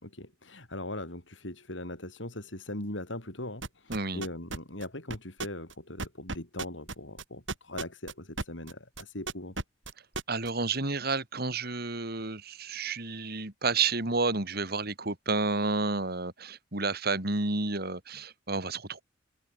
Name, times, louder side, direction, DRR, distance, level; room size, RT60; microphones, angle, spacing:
voice 1, 0.0-9.6, left 1 dB, 75° left, 6.4 m, -40 dB
sound 1, 3.6-8.7 9.0-10.5, right 3 dB, 80° right, 7.0 m, -35 dB
voice 2, 3.9-4.2 10.3-19.0, right 3 dB, 55° right, 3.4 m, -30 dB
head